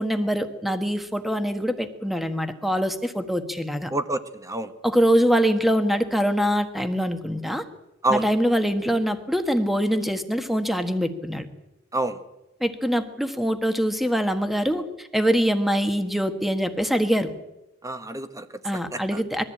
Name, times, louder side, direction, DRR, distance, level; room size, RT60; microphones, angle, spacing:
voice 1, 0.0-3.9 4.8-7.6 8.1-11.5 12.6-17.3 18.6-19.4, equal, ahead, 8 dB, 1.4 m, -24 dB
voice 2, 3.9-4.7 8.0-8.2 11.9-12.2 17.8-18.5 18.9-19.2, right 2 dB, 15° right, 9 dB, 1.3 m, -27 dB
22.0 x 14.0 x 8.7 m, 0.95 s
head